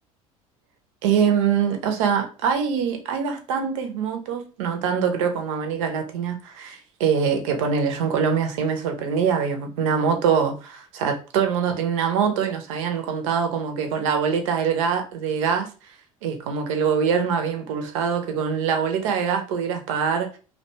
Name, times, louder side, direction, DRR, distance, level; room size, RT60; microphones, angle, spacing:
voice 1, 1.0-15.7 16.2-20.3, right 7 dB, 65° right, 0.6 m, -24 dB
2.6 x 2.2 x 2.7 m
figure-of-eight pair, 65°, 18 cm